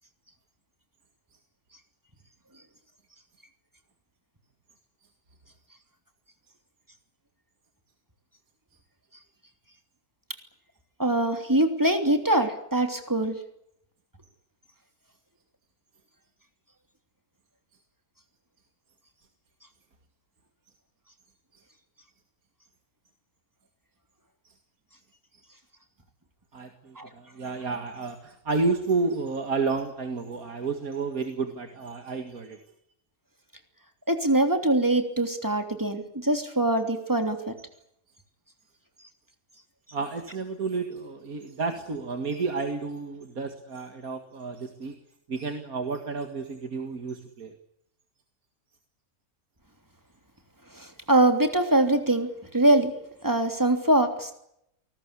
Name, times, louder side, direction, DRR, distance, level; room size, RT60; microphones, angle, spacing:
voice 1, 11.0-13.3 27.0-27.1 34.1-37.5 50.8-52.3 52.5-52.9 53.2-54.3, right 1 dB, 10° right, 6 dB, 3.1 m, -23 dB
voice 2, 26.5-32.6 39.9-45.0 45.3-47.5, right 4 dB, 70° right, 6 dB, 2.4 m, -31 dB
28.5 x 19.5 x 8.4 m, 0.77 s
omnidirectional pair, 1.6 m